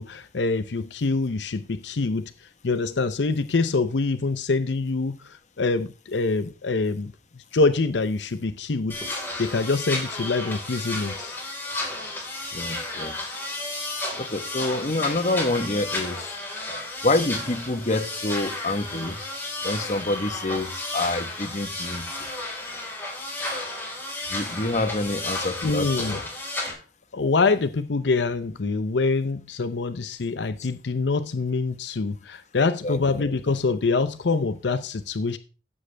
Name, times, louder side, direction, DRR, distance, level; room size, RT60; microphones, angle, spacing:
voice 1, 0.0-2.3 2.6-5.2 5.6-7.1 7.5-9.0 9.4-11.3 25.6-26.2 27.1-35.4, left 3 dB, 80° left, 0.7 m, -25 dB
sound 1, 8.9-26.7, left 2 dB, 10° left, 4.2 m, -32 dB
voice 2, 12.5-13.2 14.2-16.4 17.0-19.2 19.6-22.3 24.3-26.3 30.6-30.7 32.8-33.1, left 2 dB, 40° left, 1.1 m, -27 dB
15.0 x 7.9 x 3.4 m
head